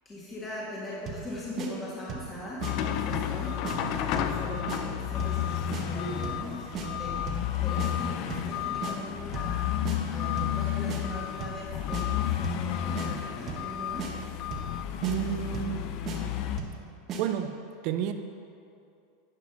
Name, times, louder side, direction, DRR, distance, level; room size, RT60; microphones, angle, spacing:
voice 1, 0.1-14.1, equal, 20° left, -6 dB, 1.7 m, -40 dB
sound 1, 1.1-1.3 1.6-1.7 2.1-2.3 2.6-2.7 3.1-3.4 3.6-3.8 4.2-4.4 4.7-4.8 5.2-5.4 5.7-5.8 6.2-6.5 6.7-6.9 7.3-7.5 7.8-7.9 8.3-8.5 8.8-8.9 9.3-9.6 9.9-10.0 10.4-10.6 10.9-11.0 11.4-11.6 11.9-12.0 12.4-12.7 13.0-13.1 13.5-13.7 14.0-14.1 14.5-14.7 15.0-15.2 15.5-15.8 16.1-16.2 16.6-16.8 17.1-17.2, right 5 dB, 40° right, 1.3 m, -36 dB
sound 2, 2.6-16.6, left 10 dB, 50° left, 0.5 m, -31 dB
voice 2, 15.0-15.8 17.2-17.6 17.8-18.1, right 10 dB, 55° right, 8 dB, 0.6 m, -30 dB
10.5 x 5.0 x 5.8 m, 2.5 s
supercardioid pair, 125°, 0 cm